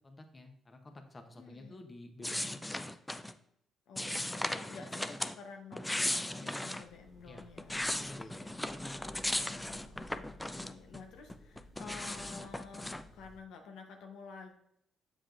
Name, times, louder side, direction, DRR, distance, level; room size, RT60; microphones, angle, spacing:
voice 1, 0.0-2.9 4.6-4.8 6.3-6.6 7.2-7.5 7.9-8.6, left 2 dB, 25° left, 5 dB, 0.8 m, -51 dB
voice 2, 1.3-1.8 3.9-7.9 9.4-14.5, left 5 dB, 85° left, 4 dB, 0.9 m, -51 dB
sound 1, 2.2-3.3 4.0-5.4 5.7-6.9 7.4-11.0 11.3-13.0, left 1 dB, 10° left, 0.4 m, -37 dB
sound 2, 6.8-13.4, left 1 dB, 50° left, 1.2 m, -57 dB
7.6 x 5.0 x 2.5 m, 0.75 s
cardioid pair, 90°, 0 cm